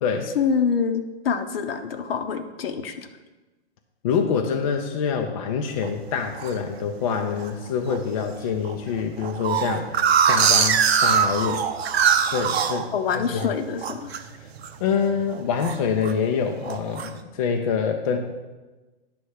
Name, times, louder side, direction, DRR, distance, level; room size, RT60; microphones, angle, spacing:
voice 1, 0.4-3.1 12.9-14.1, left 6 dB, 55° left, 8 dB, 0.9 m, -26 dB
voice 2, 4.0-11.6 12.3-13.5 14.8-18.2, left 6 dB, 30° left, 3 dB, 0.5 m, -26 dB
sound 1, 5.8-6.5 7.1-7.5 7.9-8.0 8.2-8.3 8.6-13.5 13.8-14.2 14.6-14.9 15.2-16.2 16.6-17.1, right 7 dB, 65° right, 0.8 m, -22 dB
9.9 x 3.4 x 6.3 m, 1.2 s
hypercardioid pair, 155°, 34 cm